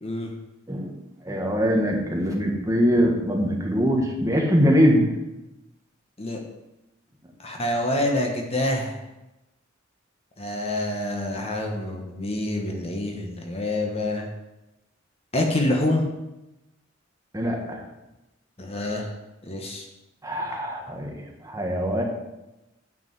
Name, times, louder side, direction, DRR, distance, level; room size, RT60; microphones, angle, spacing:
voice 1, 0.0-0.3 6.2-6.4 7.4-9.0 10.4-14.3 15.3-16.1 18.6-19.1 19.4-19.8, left 1 dB, 30° left, 2 dB, 1.2 m, -26 dB
voice 2, 1.2-5.0 17.3-17.8 20.2-22.0, equal, 15° right, 0 dB, 1.5 m, -22 dB
9.4 x 5.1 x 7.6 m, 0.97 s
head